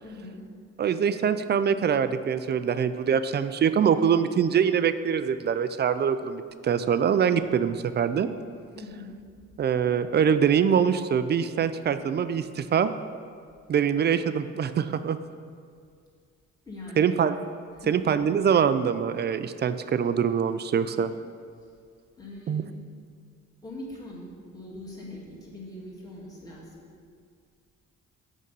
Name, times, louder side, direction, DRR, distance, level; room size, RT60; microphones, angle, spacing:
voice 1, 0.0-0.4 8.7-9.6 16.7-17.1 17.7-18.1 21.6-21.7 22.2-22.8 23.6-26.7, left 1 dB, 10° left, -6 dB, 1.9 m, -42 dB
voice 2, 0.8-8.3 9.6-12.9 13.7-15.2 17.0-17.4 17.9-21.1 22.5-22.6, right 7 dB, 35° right, 12 dB, 0.4 m, -24 dB
6.4 x 5.4 x 5.3 m, 2.2 s
cardioid pair, 90°, 30 cm